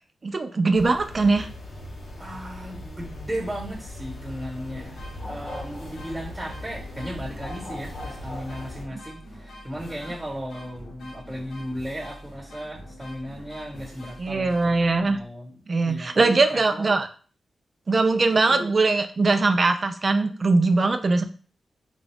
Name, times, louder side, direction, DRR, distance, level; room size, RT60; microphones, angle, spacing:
voice 1, 0.2-1.5 14.2-15.2 15.7-17.1 17.9-21.2, right 3 dB, 45° right, 7 dB, 0.5 m, -21 dB
sound 1, 0.7-8.9, left 1 dB, 60° left, 0.9 m, -39 dB
voice 2, 2.2-5.0 5.3-14.7 15.0-15.6 15.8-16.9 18.5-18.7, equal, 10° right, -3 dB, 1.3 m, -36 dB
sound 2, 4.6-15.3, equal, 85° left, 1.3 m, -44 dB
4.0 x 2.3 x 3.4 m, 0.41 s
cardioid pair, 75°, 0 cm